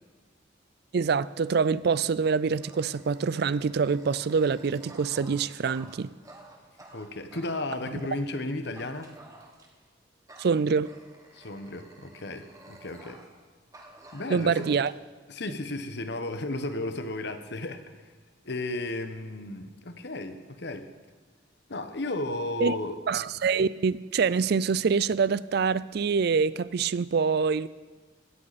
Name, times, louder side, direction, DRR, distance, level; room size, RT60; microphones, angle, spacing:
voice 1, 0.9-6.1 7.9-8.0 10.4-10.9 14.3-14.9 22.6-22.8 23.1-27.7, right 5 dB, 60° right, 18 dB, 0.4 m, -25 dB
Dog, 1.9-8.2 8.8-9.9 10.3-13.4 13.7-14.9, right 2 dB, 20° right, 1.6 m, -52 dB
voice 2, 6.9-9.1 11.3-13.2 14.1-14.6 15.3-17.9 18.4-20.9 21.7-23.0, left 2 dB, 60° left, 9 dB, 1.2 m, -34 dB
17.5 x 13.5 x 4.2 m, 1.5 s
head